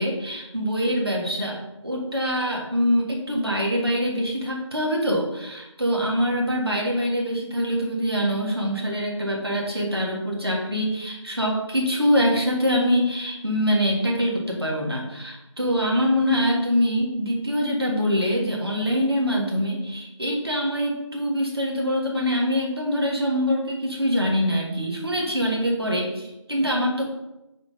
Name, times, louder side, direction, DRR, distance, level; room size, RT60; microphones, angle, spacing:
voice 1, 0.0-1.6 1.8-27.0, equal, 50° right, -2 dB, 1.7 m, -24 dB
5.6 x 3.9 x 5.1 m, 0.96 s
figure-of-eight pair, 175°, 16 cm